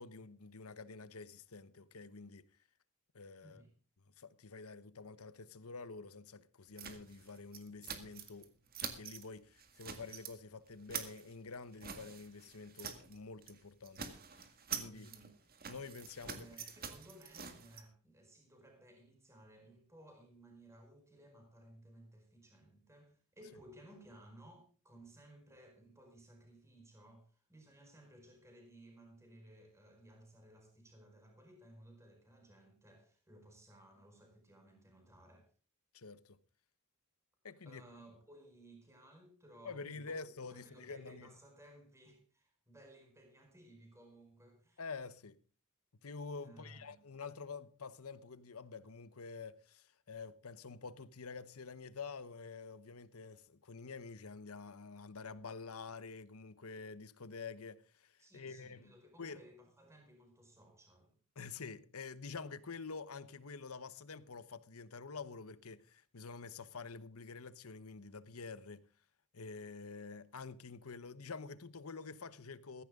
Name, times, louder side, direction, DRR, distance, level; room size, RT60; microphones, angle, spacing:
voice 1, 0.0-2.5 3.1-3.6 4.2-8.5 8.8-14.2 14.7-15.1 15.7-16.7 35.9-36.4 37.4-37.8 39.6-41.3 44.8-45.4 46.0-58.9 59.2-59.4 61.4-68.8 69.3-72.8, left 4 dB, 75° left, 1.0 m, -48 dB
sound 1, 6.8-8.5 8.7-9.3 9.6-10.3 10.7-13.2 13.4-13.6 13.8-17.8, right 7 dB, 40° right, 1.9 m, -46 dB
voice 2, 14.9-15.3 16.2-35.5 37.6-40.2 40.5-44.8 46.4-47.0 58.2-61.1, right 1 dB, 15° right, 4.6 m, -59 dB
15.5 x 15.0 x 3.7 m
head